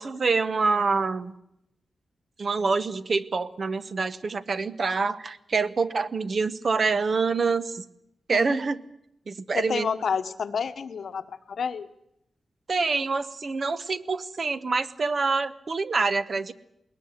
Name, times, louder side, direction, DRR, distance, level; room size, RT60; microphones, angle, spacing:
voice 1, 0.0-1.3 2.4-7.8 8.3-8.8 9.3-9.9 12.7-16.5, right 4 dB, 50° right, 12 dB, 1.0 m, -26 dB
voice 2, 9.5-11.9, left 6 dB, 70° left, 10 dB, 1.1 m, -30 dB
20.5 x 19.5 x 8.1 m, 0.79 s
wide cardioid pair, 120°, 0 cm